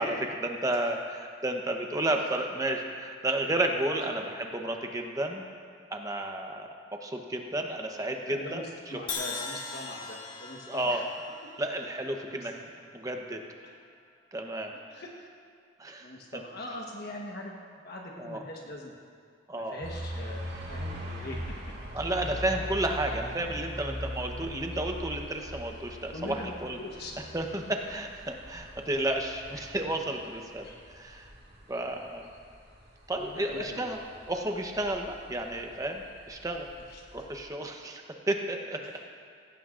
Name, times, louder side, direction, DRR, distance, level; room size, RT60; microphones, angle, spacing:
voice 1, 0.0-5.4 5.9-6.7 7.0-8.6 10.7-11.0 11.6-12.5 12.9-13.4 14.3-14.7 15.8-16.1 18.2-18.4 19.5-19.8 21.9-26.8 27.3-30.7 30.9-31.3 31.7-32.3 33.1-34.0 34.3-36.7 37.1-38.0 38.3-38.8, right 1 dB, 15° right, 3 dB, 0.9 m, -32 dB
voice 2, 8.2-8.6 8.9-11.0 11.4-11.5 12.2-12.7 14.7-15.3 16.0-18.9 19.5-21.5 26.1-27.1 29.5-29.6 30.6-30.8 33.2-33.9 36.9-37.0 38.8-39.0, left 1 dB, 55° left, -1 dB, 1.2 m, -42 dB
Crash cymbal, 9.1-13.1, left 4 dB, 25° left, 1.6 m, -40 dB
sound 1, 19.8-37.4, equal, 60° right, 2.0 m, -41 dB
16.5 x 15.5 x 2.5 m, 2.2 s
head